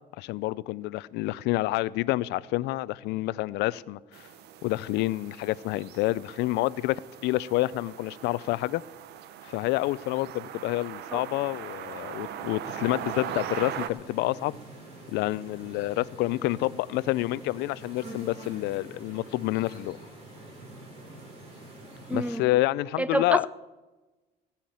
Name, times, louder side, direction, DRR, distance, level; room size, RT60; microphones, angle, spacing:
voice 1, 0.2-4.2 4.6-8.8 9.4-14.6 15.1-20.0 22.1-23.5, left 18 dB, 85° left, 0.4 m, -28 dB
sound 1, 4.1-13.9, right 10 dB, 75° right, 0.8 m, -40 dB
sound 2, 12.6-22.4, right 1 dB, 40° right, 5.4 m, -46 dB
voice 2, 22.1-22.5 23.0-23.5, right 1 dB, 10° right, 0.5 m, -27 dB
17.0 x 5.8 x 8.6 m
cardioid pair, 110°, 17 cm